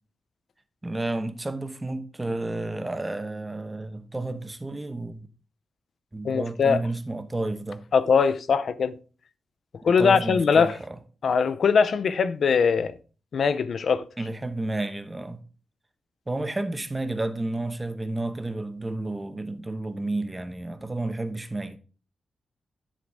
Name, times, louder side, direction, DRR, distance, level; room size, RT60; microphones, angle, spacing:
voice 1, 0.8-5.3 6.1-7.8 10.0-11.0 14.2-15.4 16.3-21.8, right 2 dB, 15° right, 0.9 m, -31 dB
voice 2, 6.2-6.8 7.9-8.9 9.8-10.7 11.2-12.9 13.3-14.0, left 6 dB, 65° left, 0.6 m, -21 dB
10.0 x 4.0 x 4.7 m
wide cardioid pair, 110°, 0 cm